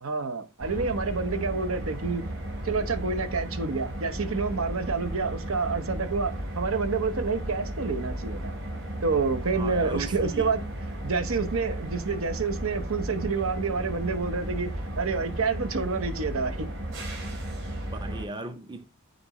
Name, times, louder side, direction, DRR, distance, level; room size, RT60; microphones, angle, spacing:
voice 1, 0.0-2.2 2.6-8.5 9.0-10.6 11.0-14.7 15.0-16.7, right 4 dB, 90° right, 1.0 m, -28 dB
sound 1, 0.6-18.3, right 1 dB, 65° right, 3.4 m, -34 dB
voice 2, 9.5-10.6 17.9-18.9, right 3 dB, 20° right, 0.6 m, -37 dB
9.4 x 4.0 x 3.0 m
head